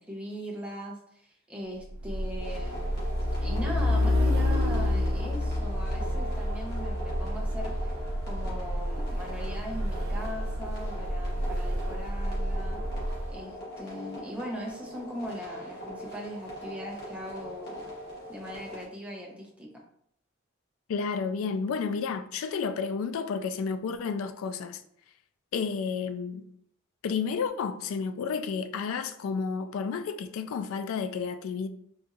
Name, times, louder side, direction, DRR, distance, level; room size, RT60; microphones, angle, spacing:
voice 1, 0.1-3.0 3.4-7.7 8.3-12.8 13.3-17.9 18.3-19.7, equal, 5° right, 0.7 m, -40 dB
Truck, 1.9-13.3, left 1 dB, 70° right, 0.6 m, -29 dB
sound 1, 2.4-18.8, equal, 50° left, 1.2 m, -42 dB
voice 2, 20.9-24.8 25.5-26.4 27.0-31.7, left 5 dB, 75° left, 0.3 m, -31 dB
4.1 x 2.6 x 2.4 m
head